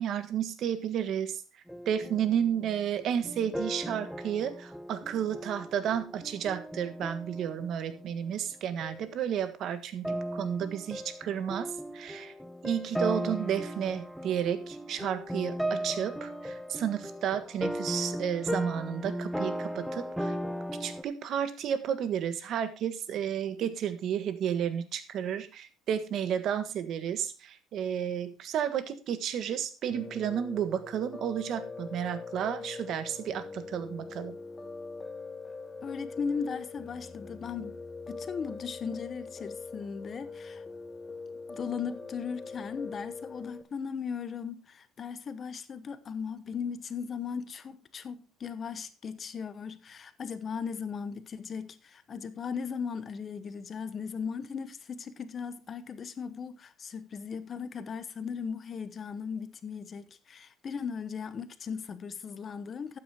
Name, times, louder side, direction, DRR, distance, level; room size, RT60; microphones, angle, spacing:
voice 1, 0.0-1.4 1.8-12.3 12.6-20.4 20.8-34.3, right 9 dB, 50° right, 1.5 m, -32 dB
sound 1, 1.7-8.5 8.8-9.1 10.0-21.0, equal, ahead, 0.9 m, -37 dB
Piano, 29.9-43.6, left 4 dB, 15° left, 1.2 m, -42 dB
voice 2, 35.8-37.8 38.1-40.6 41.5-63.0, left 6 dB, 30° left, 1.0 m, -37 dB
12.5 x 9.3 x 3.6 m
cardioid pair, 150°, 0 cm